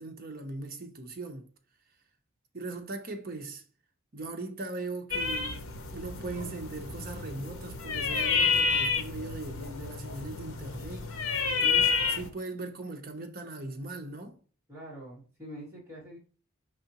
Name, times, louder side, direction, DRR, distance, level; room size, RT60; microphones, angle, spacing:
voice 1, 0.0-1.5 2.5-3.6 4.1-5.6 5.9-11.2 11.6-14.4, right 2 dB, 40° right, 0.7 m, -39 dB
sound 1, 5.1-12.3, left 5 dB, 75° left, 0.7 m, -30 dB
voice 2, 14.7-16.2, equal, 10° right, 1.6 m, -45 dB
5.0 x 3.6 x 2.9 m
head